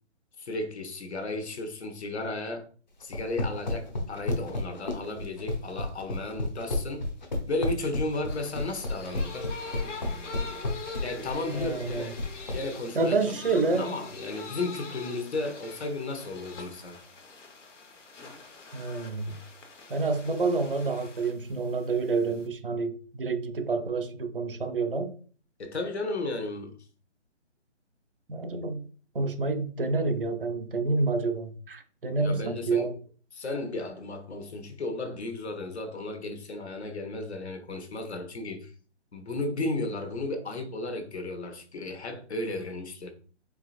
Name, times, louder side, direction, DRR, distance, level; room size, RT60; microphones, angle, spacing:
voice 1, 0.4-2.7 3.0-7.1 7.5-9.5 11.0-12.2 12.5-13.2 13.7-17.0 25.6-26.7 32.2-32.9 33.3-38.7 39.1-43.1, left 2 dB, 65° left, 1.0 m, -34 dB
sound 1, 3.0-12.6, left 2 dB, 40° left, 0.8 m, -31 dB
sound 2, 8.3-22.5, left 4 dB, 85° left, 1.2 m, -44 dB
voice 2, 11.6-12.1 12.9-13.9 18.7-19.3 19.9-25.1 28.3-28.9 29.1-32.9, right 3 dB, 50° right, 0.7 m, -28 dB
4.8 x 3.3 x 2.4 m
hypercardioid pair, 175°, 36 cm